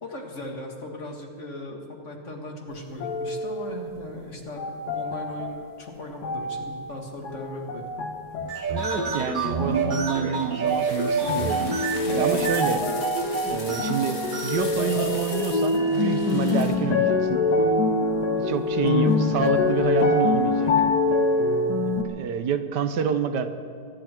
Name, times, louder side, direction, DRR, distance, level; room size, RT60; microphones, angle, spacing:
voice 1, 0.0-4.6 4.9-7.9 18.7-19.3, left 1 dB, 45° left, 1 dB, 2.2 m, -38 dB
sound 1, 3.0-4.0 4.6-5.6 6.2-6.9 7.2-8.6 8.9-9.8 10.4-10.9 11.2-22.0, left 3 dB, 75° left, 1.7 m, -25 dB
sound 2, 8.4-16.6, right 4 dB, 35° right, 1.1 m, -29 dB
voice 2, 8.7-11.7 12.1-12.8 13.4-17.4 18.3-20.7 22.0-23.5, right 7 dB, 80° right, 9 dB, 1.5 m, -28 dB
sound 3, 10.7-16.8, left 4 dB, 90° left, 2.5 m, -40 dB
23.5 x 10.5 x 4.5 m, 2.5 s
omnidirectional pair, 1.8 m